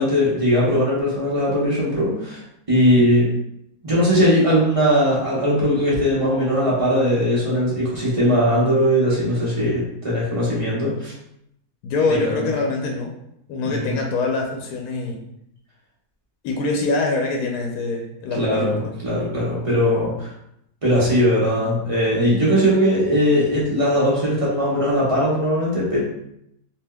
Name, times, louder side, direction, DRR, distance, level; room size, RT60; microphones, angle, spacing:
voice 1, 0.0-2.4 2.7-3.3 3.8-11.1 12.2-12.3 13.6-13.9 18.4-20.3 20.8-26.0, equal, 30° right, -7 dB, 0.7 m, -19 dB
voice 2, 2.7-3.0 11.8-13.1 13.5-15.2 16.4-18.9, left 3 dB, 75° left, 1 dB, 1.1 m, -24 dB
3.4 x 2.8 x 2.2 m, 0.76 s
omnidirectional pair, 1.6 m